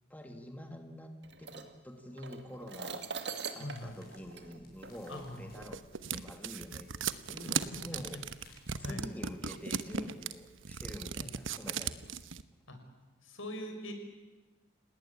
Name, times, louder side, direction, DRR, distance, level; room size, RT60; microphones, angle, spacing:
voice 1, 0.1-5.8 6.1-6.9 7.3-8.2 8.7-12.1, left 1 dB, 10° left, 4 dB, 1.7 m, -47 dB
sound 1, 1.2-5.4 6.3-6.4 7.0-7.4, right 5 dB, 55° right, 2.2 m, -43 dB
voice 2, 3.6-4.0 5.1-5.5 7.4-8.0 8.8-9.0 11.2-11.3 12.7-12.8 13.2-13.9, left 1 dB, 80° left, 6 dB, 5.9 m, -42 dB
sound 2, 3.7-8.7, left 2 dB, 50° left, 6.7 m, -62 dB
sound 3, 5.1-12.4, right 7 dB, 75° right, 1.0 m, -37 dB
29.5 x 18.5 x 9.7 m, 1.2 s
head